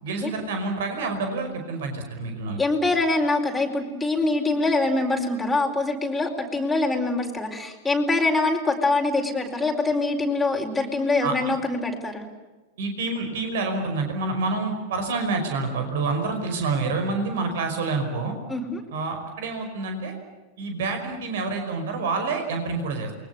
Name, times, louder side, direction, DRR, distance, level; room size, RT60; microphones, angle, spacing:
voice 1, 0.0-2.6 11.2-11.3 12.8-18.4 18.9-20.1 20.6-23.1, right 3 dB, 55° right, 5 dB, 5.4 m, -27 dB
voice 2, 2.6-12.3 18.5-18.8, left 2 dB, 5° left, 0 dB, 4.6 m, -24 dB
28.5 x 23.0 x 7.1 m, 1.2 s
figure-of-eight pair, 90°, 0 cm